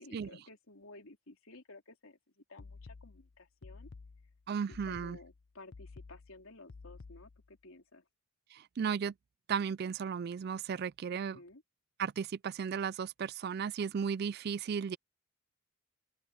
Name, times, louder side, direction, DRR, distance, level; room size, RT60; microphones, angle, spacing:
voice 1, 0.0-3.9 4.7-8.0 11.1-11.6, left 2 dB, 80° left, 3.3 m, -54 dB
sound 1, 2.6-7.6, left 4 dB, 55° left, 0.5 m, -52 dB
voice 2, 4.5-5.2 8.5-9.1 9.5-11.4 12.0-15.0, right 6 dB, 50° right, 0.3 m, -35 dB
open air
head